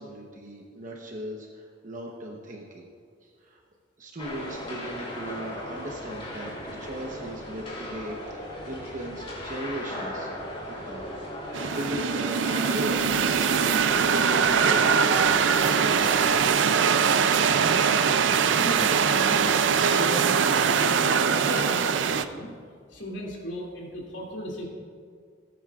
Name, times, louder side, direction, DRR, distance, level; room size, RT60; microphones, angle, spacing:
voice 1, 0.0-2.9 3.2-3.6 4.0-11.1 11.5-16.3, equal, 45° right, 0 dB, 1.0 m, -38 dB
Skatepark snippet, 4.2-16.5, equal, 30° left, 3.0 m, -36 dB
sound 1, 11.5-22.2, right 6 dB, 75° right, 0.5 m, -22 dB
voice 2, 18.5-22.5 22.9-24.7, equal, 80° left, -3 dB, 2.7 m, -35 dB
18.5 x 9.2 x 2.5 m, 2.1 s
head